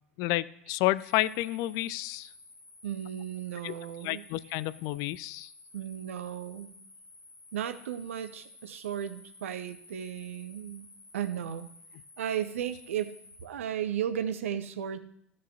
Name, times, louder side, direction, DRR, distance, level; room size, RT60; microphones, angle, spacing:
voice 1, 0.2-2.3 3.6-3.7 4.0-5.5, left 17 dB, 50° left, 18 dB, 0.4 m, -30 dB
sound 1, 1.0-13.4, left 2 dB, 10° left, 3.4 m, -54 dB
voice 2, 2.8-4.3 5.7-6.7 7.5-10.9 11.1-11.7 12.2-15.0, right 9 dB, 70° right, 11 dB, 0.7 m, -35 dB
15.0 x 6.4 x 2.8 m, 0.70 s
figure-of-eight pair, 75°, 7 cm